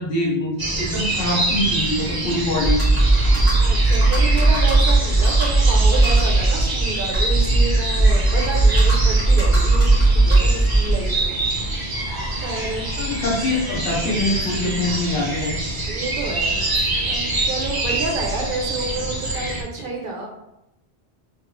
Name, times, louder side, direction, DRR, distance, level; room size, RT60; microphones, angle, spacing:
voice 1, 0.0-2.8 12.9-15.6, left 1 dB, 60° left, -4 dB, 1.2 m, -24 dB
sound 1, 0.6-19.6, right 2 dB, 30° right, 0.5 m, -26 dB
Computer keyboard, 2.6-11.2, right 2 dB, 15° left, 1.4 m, -17 dB
voice 2, 3.3-11.3 12.4-12.9 15.9-16.6 17.1-20.3, right 3 dB, 55° right, 0 dB, 0.9 m, -30 dB
3.2 x 2.5 x 3.0 m, 0.86 s
omnidirectional pair, 1.1 m